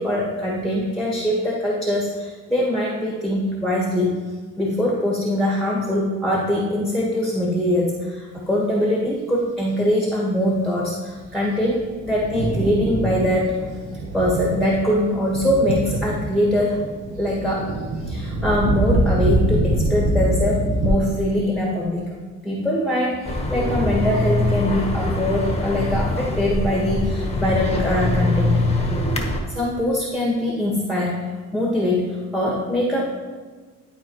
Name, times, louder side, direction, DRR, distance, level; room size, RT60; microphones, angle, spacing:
voice 1, 0.0-4.2 4.6-13.6 14.1-16.8 17.2-17.7 18.0-22.1 22.4-28.6 29.5-31.2 31.5-33.1, left 1 dB, ahead, -3 dB, 1.5 m, -22 dB
Thunder, 11.2-20.9, right 1 dB, 90° right, 1.2 m, -25 dB
sound 1, 23.2-29.4, left 1 dB, 20° left, 1.2 m, -23 dB
12.0 x 4.2 x 3.1 m, 1.5 s
cardioid pair, 90°, 30 cm